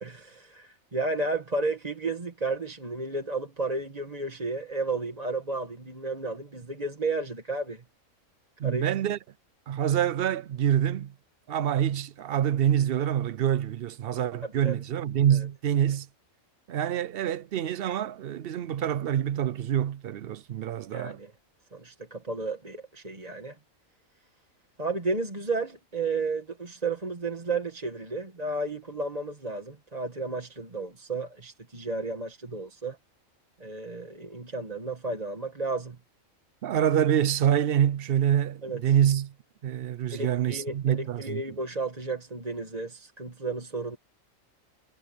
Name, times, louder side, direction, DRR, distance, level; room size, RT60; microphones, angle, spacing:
voice 1, 0.0-7.8 8.6-8.9 14.4-14.8 15.3-15.5 20.9-21.3 21.7-23.6 24.8-33.0 33.6-36.0 38.6-38.8 40.1-44.0, right 3 dB, 30° right, 1.8 m, -33 dB
voice 2, 8.6-9.2 9.7-11.1 11.5-16.1 16.7-21.2 36.6-39.3 39.6-41.6, right 10 dB, 60° right, 0.6 m, -26 dB
omnidirectional pair, 1.4 m